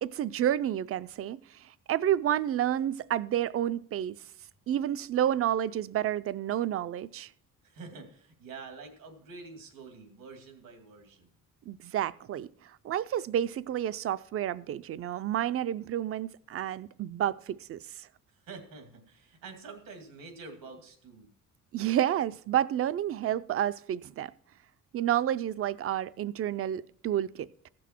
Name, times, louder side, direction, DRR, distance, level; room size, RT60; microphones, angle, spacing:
voice 1, 0.0-1.4 1.9-4.2 4.7-7.3 11.7-12.5 12.8-18.1 21.7-24.3 24.9-27.7, right 11 dB, 45° right, 0.4 m, -30 dB
voice 2, 7.6-11.3 18.3-21.3, right 4 dB, 85° right, 2.6 m, -47 dB
15.5 x 6.2 x 4.4 m
cardioid pair, 150°, 33 cm